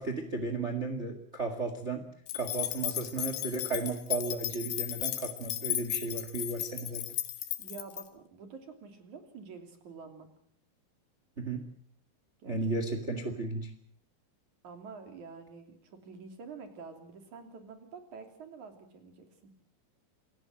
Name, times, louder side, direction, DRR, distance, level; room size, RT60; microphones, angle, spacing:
voice 1, 0.0-2.1 2.3-7.1 11.4-11.7 12.5-13.7, right 3 dB, 85° right, 8 dB, 0.6 m, -34 dB
sound 1, 2.3-8.0, left 14 dB, 75° left, 3.6 m, -35 dB
voice 2, 7.6-10.3 12.4-12.7 14.6-19.5, right 5 dB, 45° right, 6 dB, 4.0 m, -48 dB
28.0 x 17.5 x 7.6 m, 0.65 s
omnidirectional pair, 5.2 m